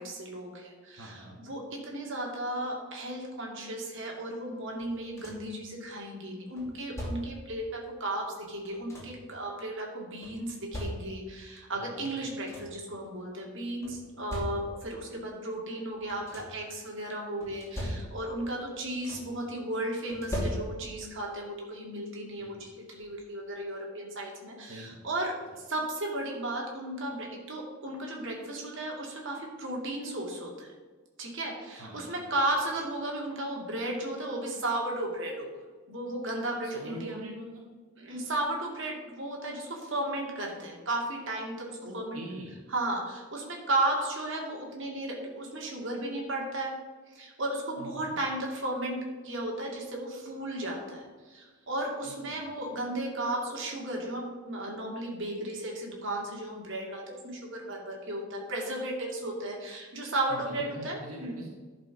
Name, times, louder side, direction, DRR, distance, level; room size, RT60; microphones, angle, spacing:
voice 1, 0.0-30.7 31.2-35.5 35.9-37.3 38.0-42.2 42.7-46.7 47.1-49.0 49.2-61.4, right 1 dB, 60° right, -1 dB, 2.4 m, -34 dB
voice 2, 1.0-1.4 11.7-12.1 22.4-22.7 24.7-25.0 31.8-32.3 36.6-37.6 41.8-42.5 47.8-48.2 52.0-52.5 60.3-61.5, right 1 dB, 85° right, -2 dB, 1.9 m, -44 dB
sound 1, 4.8-5.6 6.6-7.5 8.4-9.3 10.2-11.4 12.0-12.1 12.3-12.9 13.8-15.0 15.9-16.7 17.4-18.4 18.7-19.5 20.1-21.1 22.4-22.5 23.0-23.2, equal, 15° left, 2.7 m, -39 dB
11.5 x 5.1 x 5.8 m, 1.4 s
head